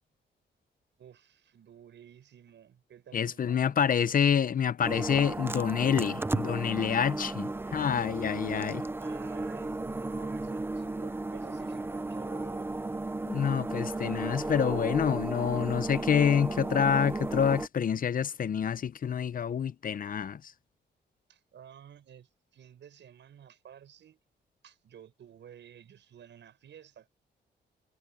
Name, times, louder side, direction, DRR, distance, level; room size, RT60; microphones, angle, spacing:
voice 1, 1.0-4.0 9.0-13.0 21.3-24.2 24.6-27.1, right 9 dB, 80° right, 7.2 m, -53 dB
voice 2, 3.1-8.8 13.3-20.4, left 8 dB, 50° left, 0.7 m, -27 dB
sound 1, 4.8-17.7, right 2 dB, 10° right, 0.5 m, -34 dB
cardioid pair, 115°, 18 cm